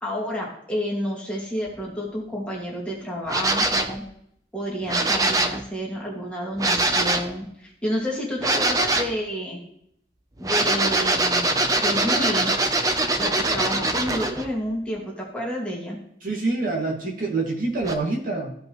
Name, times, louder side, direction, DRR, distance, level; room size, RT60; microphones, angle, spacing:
voice 1, 0.0-4.0 4.5-9.6 10.4-12.5 13.2-16.0, equal, 5° left, -4 dB, 2.1 m, -30 dB
sound 1, 3.3-4.0 4.9-5.6 6.6-7.3 8.4-9.1 10.4-14.5 17.8-17.9, right 2 dB, 20° right, 0.6 m, -23 dB
voice 2, 16.2-18.5, right 3 dB, 50° right, -2 dB, 2.2 m, -26 dB
15.0 x 5.2 x 3.1 m, 0.72 s
head